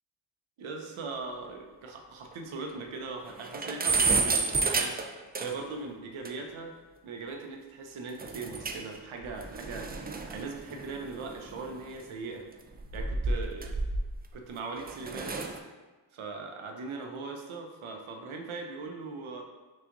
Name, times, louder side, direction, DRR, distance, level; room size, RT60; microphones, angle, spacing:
voice 1, 0.6-6.7 7.0-12.4 12.9-13.8 14.3-15.5 16.1-19.4, right 4 dB, 80° right, 3 dB, 0.7 m, -40 dB
sound 1, 1.4-1.5 1.9-2.0 2.3-2.4 2.7-2.8 3.2-5.8 6.2-6.3 8.2-9.0 9.2-11.9 12.7-14.3 14.8-15.6, right 3 dB, 20° right, 0.3 m, -31 dB
5.8 x 2.4 x 2.5 m, 1.3 s
cardioid pair, 40°, 48 cm